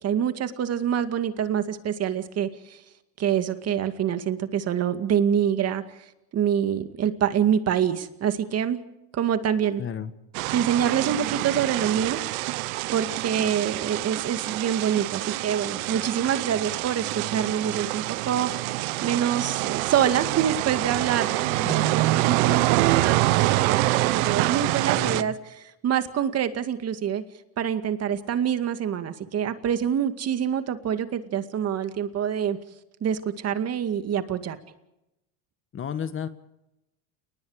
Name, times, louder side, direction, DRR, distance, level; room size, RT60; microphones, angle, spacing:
voice 1, 0.0-2.8 3.2-5.8 6.3-8.8 9.1-9.8 10.5-12.4 12.9-25.6 25.8-27.2 27.6-32.6 33.0-34.6, right 9 dB, 35° right, 9 dB, 2.2 m, -26 dB
voice 2, 9.8-10.1 21.6-21.9 25.0-25.3 35.7-36.3, left 8 dB, 30° left, 11 dB, 1.6 m, -32 dB
sound 1, 10.3-25.2, right 19 dB, 85° right, 1.0 m, -26 dB
30.0 x 19.5 x 5.0 m, 0.89 s
supercardioid pair, 130°, 41 cm